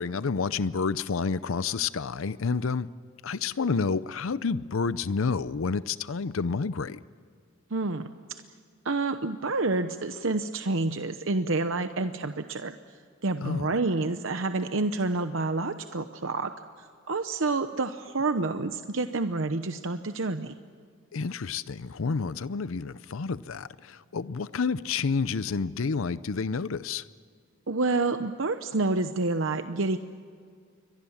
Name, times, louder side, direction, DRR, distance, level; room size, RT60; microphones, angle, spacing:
voice 1, 0.0-2.9 3.2-7.0 13.4-13.7 21.1-27.0, left 5 dB, 75° left, 16 dB, 0.6 m, -29 dB
voice 2, 7.7-8.4 8.8-16.5 16.8-20.5 27.7-30.0, right 3 dB, 65° right, 9 dB, 0.9 m, -28 dB
29.0 x 23.5 x 7.3 m, 2.2 s
head